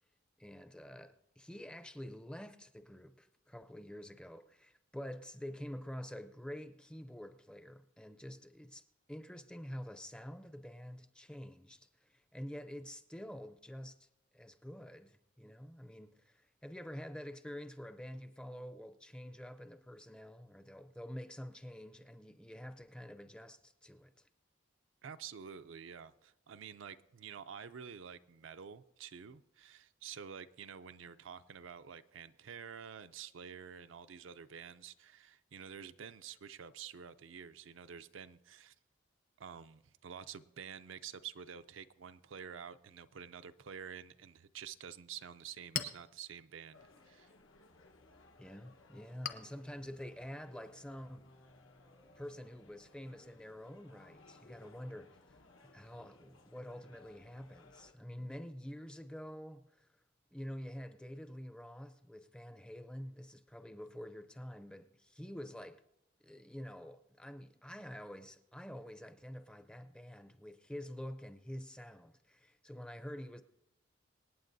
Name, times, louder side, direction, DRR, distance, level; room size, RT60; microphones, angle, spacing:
voice 1, 0.4-14.1 14.3-24.3 48.4-51.2 52.2-55.4 55.6-59.9 60.3-65.8 66.2-73.4, equal, 5° left, 0.5 m, -48 dB
voice 2, 25.0-38.7 39.4-47.3, right 7 dB, 75° right, 0.5 m, -49 dB
Chink clink, 45.2-52.3, left 7 dB, 45° left, 0.8 m, -48 dB
sound 1, 46.7-57.9, left 3 dB, 90° left, 1.2 m, -63 dB
sound 2, 49.8-55.1, left 1 dB, 75° left, 2.6 m, -65 dB
26.5 x 8.9 x 2.7 m
head